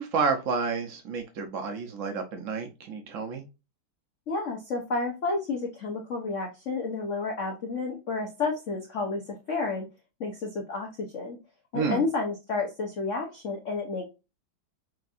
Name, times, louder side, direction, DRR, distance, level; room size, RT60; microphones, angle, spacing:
voice 1, 0.0-3.4 11.7-12.0, right 5 dB, 85° right, 5 dB, 0.7 m, -30 dB
voice 2, 4.3-9.2 9.5-9.9 10.2-10.9 11.1-11.4 11.7-14.1, left 3 dB, 55° left, 1 dB, 0.8 m, -30 dB
6.2 x 2.6 x 2.4 m, 0.27 s
omnidirectional pair, 2.3 m